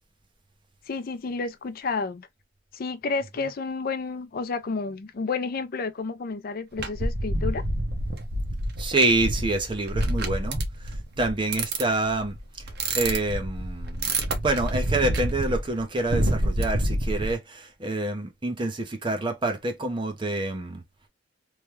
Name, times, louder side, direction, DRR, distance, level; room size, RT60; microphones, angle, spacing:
voice 1, 0.9-2.3 2.7-7.7, left 4 dB, 50° left, 0.4 m, -31 dB
sound 1, 6.8-17.3, right 1 dB, 60° right, 0.8 m, -28 dB
voice 2, 8.8-12.6 12.9-14.1 14.4-20.8, right 2 dB, 25° right, 0.7 m, -27 dB
3.2 x 2.2 x 3.0 m
head